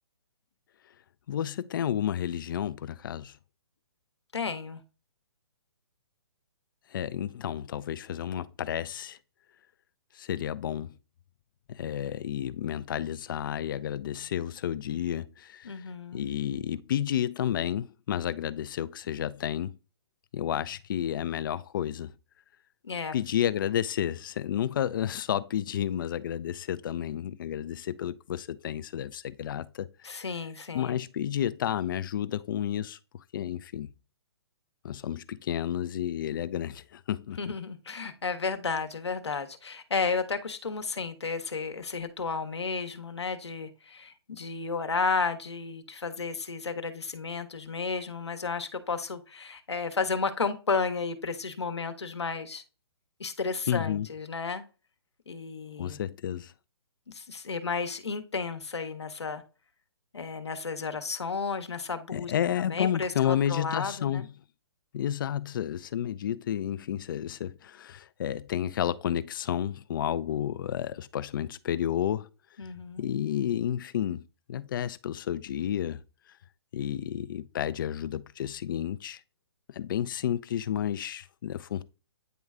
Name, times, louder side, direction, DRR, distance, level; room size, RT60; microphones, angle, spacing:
voice 1, 1.3-3.4 6.9-9.2 10.1-10.9 11.7-15.9 16.1-19.8 20.3-22.1 23.1-30.1 30.7-33.0 33.3-33.9 34.8-37.4 53.7-54.1 55.8-56.5 62.1-64.3 64.9-72.3 73.0-76.0 76.7-79.2 79.7-81.8, left 10 dB, 50° left, 0.5 m, -31 dB
voice 2, 4.3-4.8 15.6-16.3 22.8-23.1 30.0-31.0 37.4-52.6 53.2-54.6 55.3-56.0 57.1-59.4 60.1-62.3 62.6-64.3 72.6-73.1, left 4 dB, 85° left, 1.1 m, -33 dB
9.3 x 3.1 x 3.6 m
hypercardioid pair, 135°, 14 cm